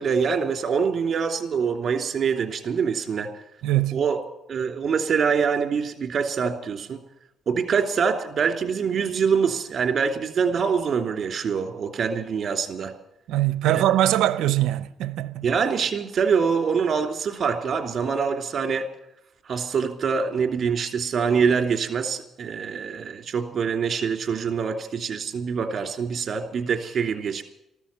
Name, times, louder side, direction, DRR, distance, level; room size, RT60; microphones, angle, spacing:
voice 1, 0.0-3.3 3.9-4.2 4.5-7.0 7.5-12.9 13.6-13.8 15.4-18.9 19.4-27.4, right 6 dB, 50° right, 3.0 m, -25 dB
voice 2, 3.6-4.0 13.3-15.5, right 13 dB, 85° right, 0.8 m, -22 dB
14.5 x 13.5 x 7.1 m
cardioid pair, 90°, 0 cm